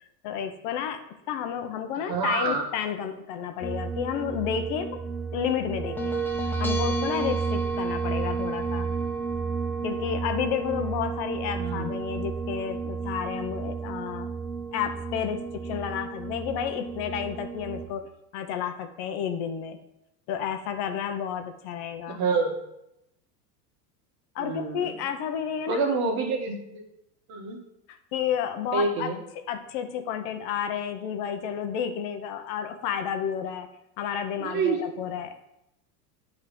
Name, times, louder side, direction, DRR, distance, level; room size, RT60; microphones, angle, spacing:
voice 1, 0.2-5.0 5.3-6.1 6.6-8.9 9.8-14.3 14.7-18.1 18.3-19.8 20.3-22.2 24.3-26.0 27.9-29.1 29.5-33.7 34.0-35.5, left 8 dB, 55° left, 7 dB, 0.8 m, -31 dB
voice 2, 2.1-2.7 11.6-11.9 22.1-22.6 24.4-24.9 25.7-26.8 27.3-27.6 28.7-29.2 34.4-34.9, right 4 dB, 45° right, 3 dB, 1.4 m, -27 dB
sound 1, 3.6-17.9, right 4 dB, 5° left, 0.8 m, -31 dB
8.3 x 3.1 x 5.0 m, 0.84 s
supercardioid pair, 110°, 49 cm